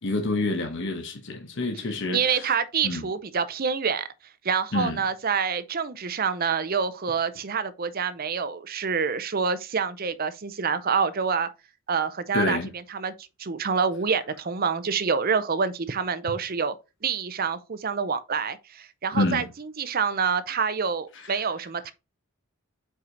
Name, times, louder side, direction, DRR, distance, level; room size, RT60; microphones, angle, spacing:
voice 1, 0.0-2.5 2.8-3.1 4.7-5.0 12.3-12.7 19.1-19.5 21.1-21.4, left 2 dB, 55° left, 1.0 m, -28 dB
voice 2, 2.1-4.1 4.4-11.5 11.9-12.6 12.9-13.1 13.4-16.7 17.0-21.9, right 6 dB, 40° right, 0.6 m, -27 dB
5.7 x 4.8 x 3.9 m
head